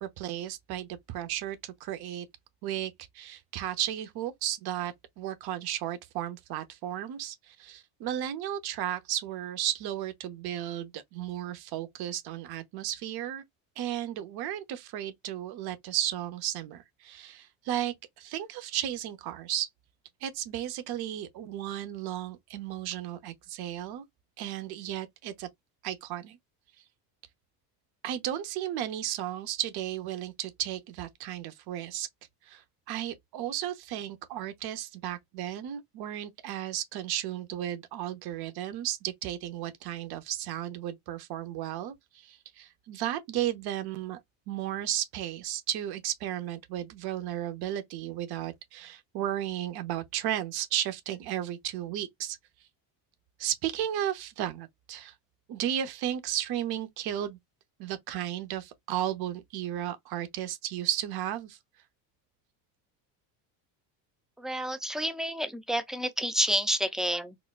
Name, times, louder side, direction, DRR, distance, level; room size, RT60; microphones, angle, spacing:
voice 1, 0.0-2.3 2.6-13.4 13.8-19.7 20.2-24.0 24.4-25.5 25.8-26.4 28.0-32.1 32.5-44.2 44.5-52.4 53.4-55.1 55.5-57.4 57.8-61.6, right 12 dB, 60° right, 0.9 m, -34 dB
voice 2, 64.4-67.4, equal, ahead, 0.5 m, -29 dB
4.1 x 2.3 x 2.4 m
supercardioid pair, 105°, 44 cm